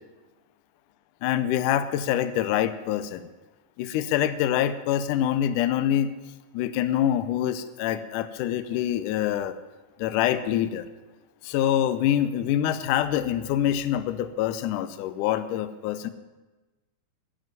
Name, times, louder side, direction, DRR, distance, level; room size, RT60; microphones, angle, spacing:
voice 1, 1.2-3.3 3.8-6.1 6.5-9.6 10.0-10.9 11.4-16.1, left 11 dB, 90° left, 11 dB, 1.8 m, -25 dB
11.5 x 7.7 x 9.1 m, 1.2 s
omnidirectional pair, 4.4 m